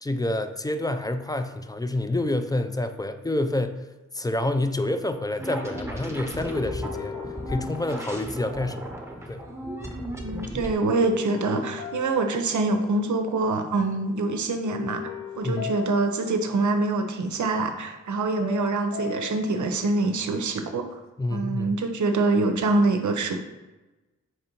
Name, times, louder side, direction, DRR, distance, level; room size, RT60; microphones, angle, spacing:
voice 1, 0.0-3.9 4.1-7.2 7.5-8.9 9.3-9.4 15.4-15.7 21.2-21.7, left 1 dB, 10° left, 8 dB, 0.4 m, -28 dB
sound 1, 5.4-6.0 6.5-9.1 10.8-13.4 13.7-14.1 14.6-17.4 18.4-19.9, left 8 dB, 85° left, 0.5 m, -39 dB
sound 2, 5.4-10.7, right 1 dB, 10° right, 0.9 m, -35 dB
voice 2, 10.1-20.9 21.3-23.4, right 3 dB, 65° right, 6 dB, 0.6 m, -25 dB
4.2 x 2.6 x 4.4 m, 1.1 s
cardioid pair, 40°, 32 cm